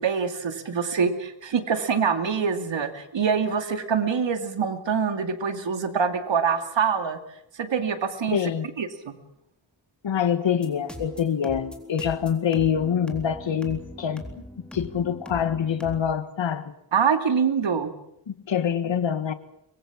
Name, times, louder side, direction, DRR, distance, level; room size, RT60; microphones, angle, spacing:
voice 1, 0.0-7.2 7.6-8.4 8.8-9.1 16.9-17.9, right 6 dB, 80° right, 2.5 m, -25 dB
voice 2, 8.3-8.7 10.0-14.2 14.6-16.7 18.3-19.3, left 8 dB, 80° left, 1.6 m, -25 dB
sound 1, 10.6-16.0, left 1 dB, ahead, 3.7 m, -41 dB
24.5 x 21.5 x 7.3 m
wide cardioid pair, 105°, 44 cm